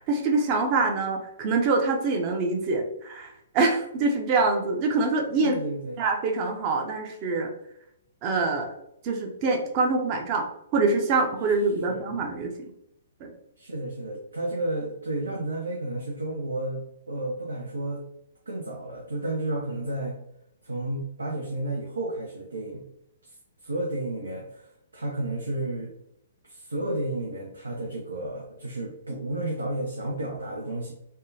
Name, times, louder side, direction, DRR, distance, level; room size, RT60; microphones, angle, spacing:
voice 1, 0.0-5.6 6.0-7.5 8.2-8.7 9.0-10.5 10.7-12.5 13.2-13.3, right 3 dB, 35° right, 3 dB, 0.7 m, -25 dB
voice 2, 5.4-6.0 11.9-12.0 13.6-18.0 18.5-20.2 20.6-22.8 23.2-23.3 23.6-25.9 26.4-30.9, right 1 dB, 85° right, 0 dB, 0.6 m, -32 dB
3.5 x 2.3 x 2.7 m, 0.78 s
figure-of-eight pair, 125°, 0 cm